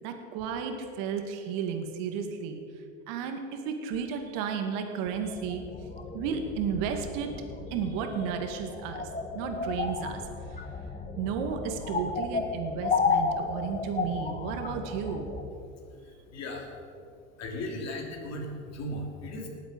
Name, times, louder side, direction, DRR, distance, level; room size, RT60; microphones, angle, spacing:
voice 1, 0.0-2.6 3.1-5.6 6.1-7.3 7.7-9.1 9.3-10.2 11.2-15.3, right 7 dB, 60° right, 5 dB, 2.0 m, -33 dB
sound 1, 5.1-15.5, left 4 dB, 20° left, 1.2 m, -33 dB
voice 2, 15.9-16.8 17.4-19.5, left 1 dB, 40° left, 1 dB, 2.9 m, -37 dB
19.0 x 8.0 x 5.3 m, 2.5 s
hypercardioid pair, 90°, 39 cm